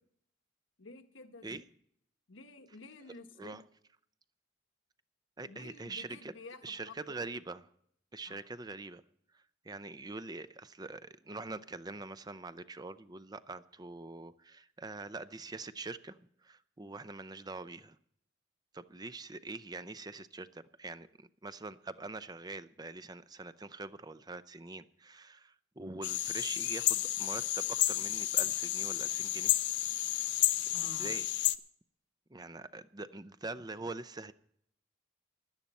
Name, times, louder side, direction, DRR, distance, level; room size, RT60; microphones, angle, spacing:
voice 1, 0.8-1.5 2.3-3.6 5.5-6.9 8.3-8.5 30.7-31.1, left 3 dB, 80° left, 7 dB, 1.3 m, -51 dB
voice 2, 5.4-6.3 6.6-7.7 8.1-9.0 9.3-18.0 18.7-29.5 30.9-31.5 32.3-34.3, right 3 dB, 20° right, 14 dB, 0.6 m, -44 dB
sound 1, 26.0-31.6, left 14 dB, 60° left, 0.7 m, -31 dB
16.0 x 12.0 x 4.2 m, 0.68 s
head